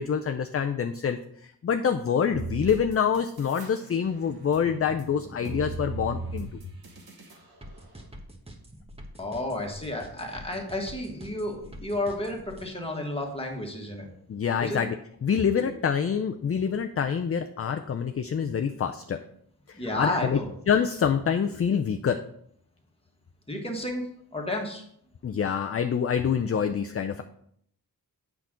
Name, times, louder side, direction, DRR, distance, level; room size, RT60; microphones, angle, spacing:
voice 1, 0.0-6.5 14.3-14.9 15.2-19.2 19.7-20.4 20.7-22.2 25.2-27.2, left 7 dB, 40° left, 7 dB, 0.4 m, -26 dB
sound 1, 2.3-3.7 4.1-7.4, right 3 dB, 75° right, 1.6 m, -37 dB
sound 2, 7.6-12.7, equal, 15° right, 1.1 m, -45 dB
voice 2, 9.2-14.1 14.6-14.8 15.6-15.7 19.8-20.5 23.5-24.9, left 1 dB, 15° left, 0 dB, 1.6 m, -32 dB
8.2 x 5.9 x 3.8 m, 0.67 s
wide cardioid pair, 110°, 37 cm